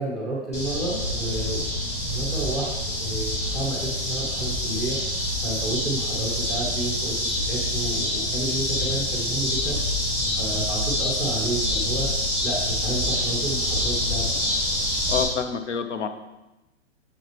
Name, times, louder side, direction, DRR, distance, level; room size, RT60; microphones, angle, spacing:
voice 1, 0.0-1.6 2.1-7.1 7.5-10.0 10.3-12.1 12.4-14.4, right 2 dB, ahead, -6 dB, 0.5 m, -31 dB
sound 1, 0.5-15.2, left 1 dB, 20° left, 1.7 m, -26 dB
voice 2, 15.1-16.1, left 6 dB, 70° left, 8 dB, 0.8 m, -27 dB
6.5 x 6.1 x 2.9 m, 1.0 s
hypercardioid pair, 150°, 36 cm